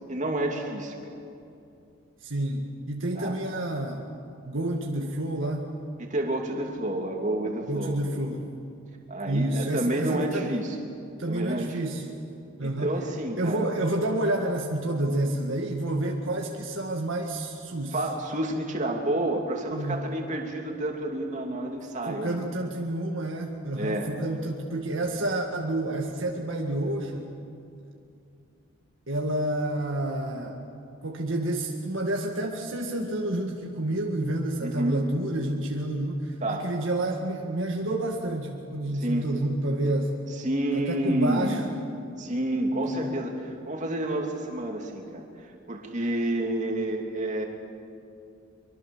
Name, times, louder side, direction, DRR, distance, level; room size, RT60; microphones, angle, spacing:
voice 1, 0.1-1.2 3.1-3.3 6.0-8.1 9.1-10.8 11.3-11.8 12.6-13.8 17.9-22.4 23.7-24.1 34.6-35.1 36.4-36.7 39.0-39.2 40.4-41.8 42.2-45.2 45.7-47.5, right 1 dB, 35° right, 1 dB, 2.9 m, -29 dB
voice 2, 2.2-4.1 4.4-5.9 7.7-8.5 9.3-10.6 11.2-12.1 12.6-12.9 13.4-18.0 19.7-20.0 22.0-27.3 29.1-30.6 31.0-40.1 40.7-41.6 42.9-43.2, right 1 dB, 60° right, 1 dB, 1.9 m, -29 dB
24.0 x 24.0 x 7.3 m, 2.6 s
head